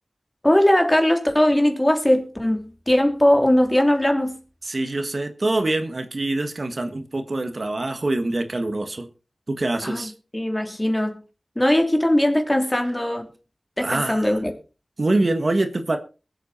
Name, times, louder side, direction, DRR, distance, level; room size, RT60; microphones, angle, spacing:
voice 1, 0.4-4.4 9.8-11.2 11.5-13.3 13.8-14.5, left 1 dB, 20° left, 3.2 m, -20 dB
voice 2, 4.6-9.1 9.5-10.1 13.8-14.3 15.0-16.0, right 2 dB, 60° right, 1.6 m, -24 dB
21.0 x 8.1 x 4.3 m
wide cardioid pair, 50°, 0 cm